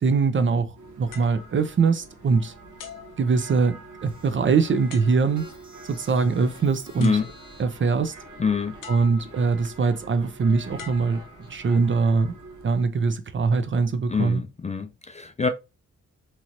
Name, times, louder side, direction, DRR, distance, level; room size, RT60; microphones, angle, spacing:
voice 1, 0.0-2.5 3.2-5.4 5.9-7.2 7.6-8.1 8.9-11.2 11.5-12.4 12.6-14.4, right 4 dB, 40° right, 0.5 m, -22 dB
sound 1, 0.8-12.8, right 3 dB, 70° right, 1.0 m, -46 dB
sound 2, 1.1-2.3 2.8-4.0 4.9-5.6 6.6-6.7 7.0-7.8 8.8-9.6 10.8-11.9 12.6-12.9, left 8 dB, 85° left, 0.7 m, -45 dB
sound 3, 4.0-12.3, equal, 15° right, 1.2 m, -51 dB
voice 2, 8.4-8.7 14.1-15.5, left 5 dB, 25° left, 0.3 m, -25 dB
2.9 x 2.9 x 2.5 m
cardioid pair, 75°, 31 cm